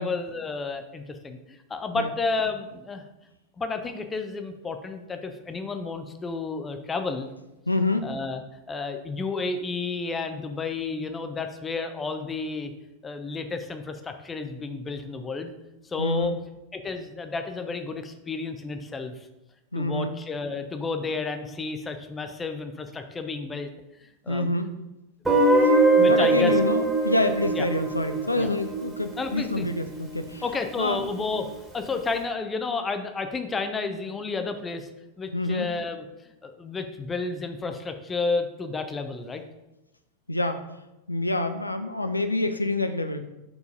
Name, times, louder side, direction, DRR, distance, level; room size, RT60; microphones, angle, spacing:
voice 1, 0.0-3.0 3.6-7.3 8.0-8.4 8.7-12.7 13.0-15.5 15.8-16.3 16.7-19.3 19.7-23.7 24.2-24.5 26.0-26.5 27.5-27.7 28.4-28.5 29.2-29.7 30.4-31.5 31.7-34.9 35.2-36.1 36.4-39.4, left 4 dB, 15° left, 7 dB, 0.6 m, -31 dB
voice 2, 7.7-8.1 16.0-16.3 19.7-20.1 24.3-24.7 25.6-30.4 30.8-31.1 35.3-35.7 40.3-40.6 41.1-43.3, left 2 dB, 85° left, 9 dB, 0.4 m, -27 dB
Guitar, 25.3-30.1, right 2 dB, 5° right, 1.5 m, -23 dB
4.8 x 3.9 x 5.0 m, 0.96 s
figure-of-eight pair, 90°, 0 cm